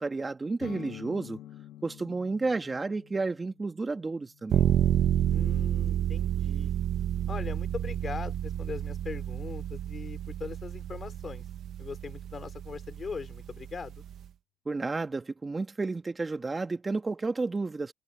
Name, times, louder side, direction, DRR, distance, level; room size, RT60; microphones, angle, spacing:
voice 1, 0.0-1.4 1.8-4.7 14.7-17.9, right 3 dB, 25° right, 1.9 m, -31 dB
sound 1, 0.6-8.2, left 12 dB, 80° left, 1.9 m, -50 dB
sound 2, 4.5-14.3, right 10 dB, 70° right, 1.5 m, -30 dB
voice 2, 5.3-6.7 7.3-11.4 11.8-14.0, left 5 dB, 40° left, 4.3 m, -40 dB
cardioid pair, 90°, 0 cm